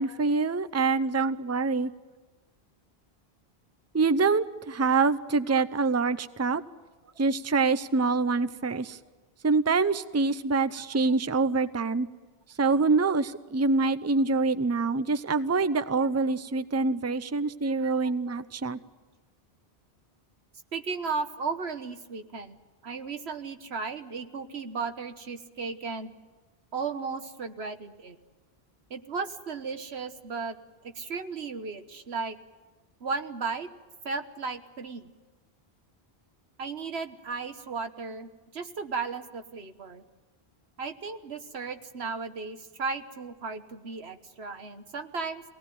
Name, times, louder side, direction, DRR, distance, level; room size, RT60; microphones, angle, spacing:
voice 1, 0.0-1.9 3.9-6.6 7.2-9.0 9.4-12.1 12.6-18.8, right 4 dB, 20° right, 13 dB, 0.6 m, -25 dB
voice 2, 20.7-22.6 22.8-26.1 26.7-28.2 28.9-30.6 30.9-32.4 33.0-33.7 34.0-35.0 36.6-40.0 40.8-45.4, right 4 dB, 90° right, 8 dB, 1.6 m, -35 dB
24.0 x 18.5 x 9.4 m, 1.3 s
omnidirectional pair, 1.1 m